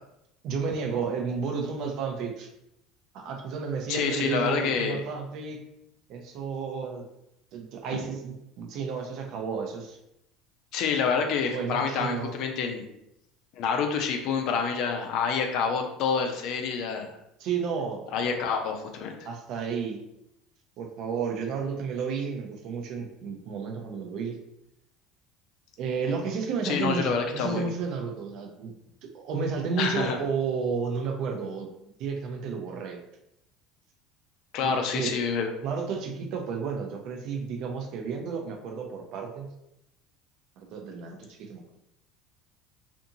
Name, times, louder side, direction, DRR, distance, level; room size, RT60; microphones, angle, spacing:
voice 1, 0.4-2.5 3.1-5.6 6.1-7.0 7.5-10.0 11.5-12.3 17.4-18.0 19.2-20.0 20.8-24.4 25.8-28.7 29.0-31.7 32.0-33.0 34.6-35.1 35.6-39.5 40.7-41.6, right 5 dB, 60° right, 2 dB, 0.6 m, -32 dB
voice 2, 3.9-5.0 10.7-12.9 13.6-17.1 18.1-19.1 26.6-27.6 29.8-30.2 34.5-35.5, left 6 dB, 60° left, 4 dB, 0.5 m, -27 dB
2.6 x 2.6 x 2.6 m, 0.82 s
hypercardioid pair, 70°, 0 cm